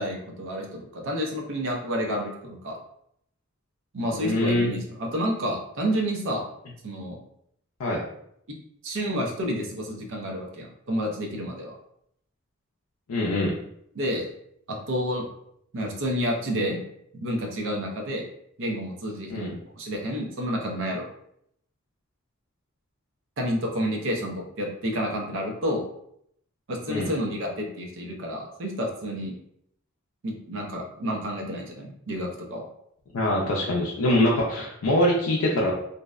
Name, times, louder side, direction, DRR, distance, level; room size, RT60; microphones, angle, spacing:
voice 1, 0.0-2.8 3.9-6.4 6.8-7.2 8.5-8.6 8.8-11.7 14.0-14.3 14.7-15.2 15.7-16.8 17.1-18.3 18.6-21.1 23.4-25.8 26.7-29.3 30.2-32.6, equal, 60° right, 1 dB, 0.5 m, -30 dB
voice 2, 4.1-4.7 7.8-8.0 13.1-13.5 19.3-19.5 26.9-27.1 33.1-35.7, left 1 dB, 85° left, -3 dB, 0.4 m, -24 dB
2.6 x 2.0 x 2.3 m, 0.72 s
head